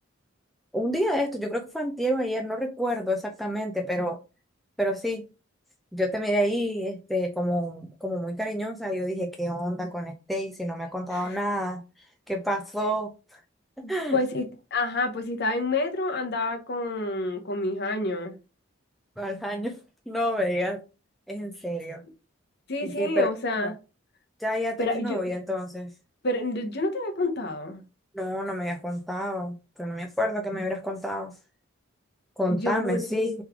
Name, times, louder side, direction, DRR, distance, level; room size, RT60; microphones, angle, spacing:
voice 1, 0.7-4.2 4.8-5.2 5.9-11.8 12.3-13.4 13.9-14.2 19.2-19.8 20.1-20.8 21.3-22.0 22.8-23.3 23.6-23.7 24.4-25.9 28.1-31.3 32.4-33.3, equal, ahead, 0.3 m, -29 dB
voice 2, 13.8-14.4 14.7-18.3 22.7-23.7 24.8-25.3 26.2-27.8 32.4-33.0, left 2 dB, 50° left, 0.8 m, -28 dB
3.4 x 3.2 x 3.5 m
head